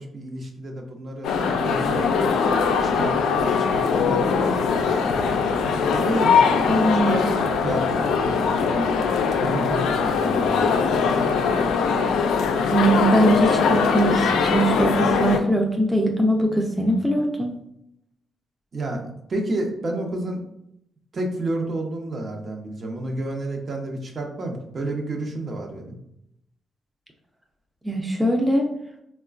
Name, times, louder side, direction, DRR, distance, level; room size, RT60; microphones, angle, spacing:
voice 1, 0.0-2.5 2.8-4.9 5.9-9.0 9.4-10.8 18.7-20.4 21.1-25.9, right 2 dB, 45° right, 1 dB, 0.7 m, -30 dB
sound 1, 1.2-15.4, left 5 dB, 85° left, 0.3 m, -21 dB
voice 2, 6.7-7.2 12.7-17.5 27.8-28.7, right 1 dB, 10° right, 1 dB, 0.5 m, -21 dB
3.7 x 2.2 x 2.4 m, 0.77 s
cardioid pair, 75°, 0 cm